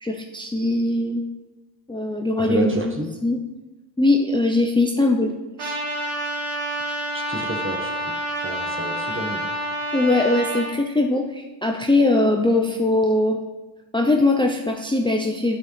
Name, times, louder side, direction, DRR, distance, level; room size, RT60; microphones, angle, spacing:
voice 1, 0.0-1.2 1.9-2.9 3.2-3.4 4.0-5.3 5.6-5.7 9.9-13.4 13.9-15.6, left 2 dB, 10° left, 1 dB, 0.6 m, -21 dB
voice 2, 2.4-3.1 7.1-8.1 8.4-9.4, right 2 dB, 25° right, 2 dB, 1.3 m, -29 dB
Trumpet, 5.6-10.7, right 1 dB, 85° right, 1.4 m, -28 dB
8.4 x 5.1 x 3.3 m, 1.1 s
cardioid pair, 45°, 48 cm